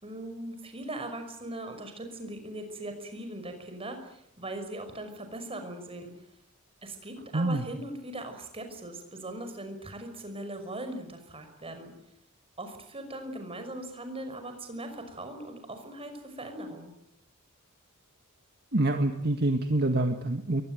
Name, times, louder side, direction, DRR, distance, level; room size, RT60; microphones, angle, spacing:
voice 1, 0.0-6.1 6.8-11.9 12.6-16.9, right 1 dB, 25° right, 6 dB, 5.7 m, -40 dB
voice 2, 7.3-7.7 18.7-20.6, right 2 dB, 45° right, 5 dB, 1.8 m, -26 dB
23.0 x 21.0 x 9.4 m, 0.76 s
head